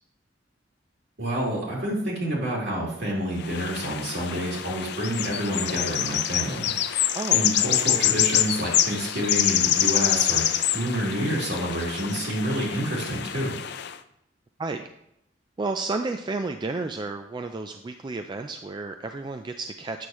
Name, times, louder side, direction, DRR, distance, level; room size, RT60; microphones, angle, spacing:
voice 1, 1.2-6.7 7.3-10.4 10.7-13.5, right 1 dB, 65° right, -4 dB, 2.9 m, -28 dB
sound 1, 3.4-13.9, left 11 dB, 65° left, 0.5 m, -26 dB
voice 2, 7.1-7.7 14.6-14.8 15.6-20.1, right 3 dB, 25° right, 6 dB, 0.4 m, -32 dB
8.4 x 6.4 x 3.0 m, 0.78 s
head